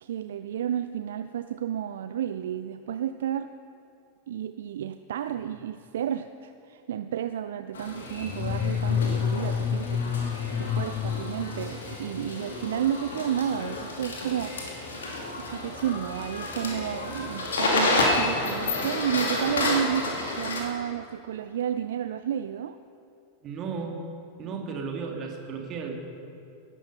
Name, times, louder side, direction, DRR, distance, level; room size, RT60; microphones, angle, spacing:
voice 1, 0.0-3.5 4.3-10.2 10.6-14.6 15.4-22.8, right 10 dB, 60° right, 12 dB, 0.4 m, -31 dB
sound 1, 7.7-20.6, left 2 dB, 65° left, 2.6 m, -30 dB
sound 2, 8.2-12.3, left 8 dB, 30° left, 0.6 m, -29 dB
voice 2, 23.4-24.0 24.4-26.0, right 5 dB, 30° right, 2 dB, 2.3 m, -34 dB
18.0 x 11.5 x 5.5 m, 2.7 s
figure-of-eight pair, 90°, 0 cm